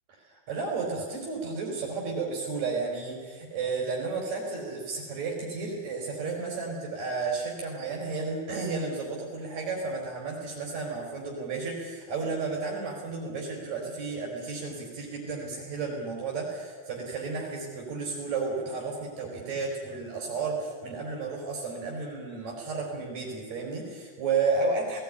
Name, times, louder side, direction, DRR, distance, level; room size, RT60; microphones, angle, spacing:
voice 1, 0.2-25.0, right 4 dB, 65° right, -2 dB, 5.2 m, -32 dB
19.0 x 18.0 x 9.8 m, 1.5 s
omnidirectional pair, 3.5 m